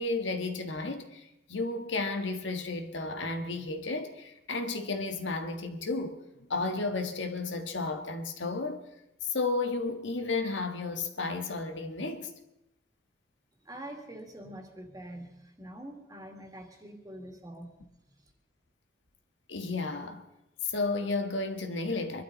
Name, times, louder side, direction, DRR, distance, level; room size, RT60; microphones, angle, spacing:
voice 1, 0.0-8.9 9.2-12.3 19.5-20.2 20.6-22.2, left 3 dB, 80° left, 1.6 m, -33 dB
voice 2, 13.6-17.8, right 1 dB, 20° right, 2.2 m, -45 dB
23.5 x 12.5 x 4.0 m
head